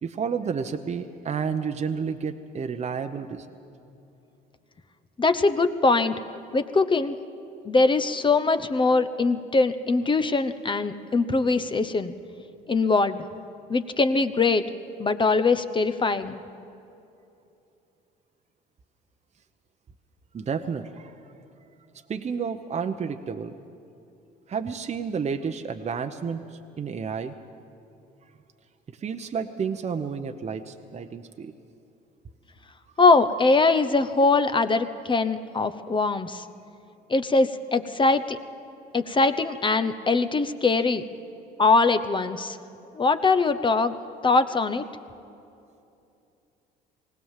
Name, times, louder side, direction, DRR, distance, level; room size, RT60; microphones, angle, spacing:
voice 1, 0.0-3.5 20.3-21.1 22.1-23.5 24.5-27.4 29.0-31.5, right 6 dB, 35° right, 6 dB, 0.9 m, -31 dB
voice 2, 5.2-6.2 6.5-7.1 7.7-12.1 12.7-13.2 13.7-14.6 15.0-16.4 33.0-36.4 37.1-38.4 38.9-41.0 41.6-42.6 42.9-43.9 44.2-44.8, left 3 dB, 25° left, 11 dB, 0.9 m, -22 dB
20.0 x 17.5 x 7.5 m, 2.7 s
supercardioid pair, 80°, 19 cm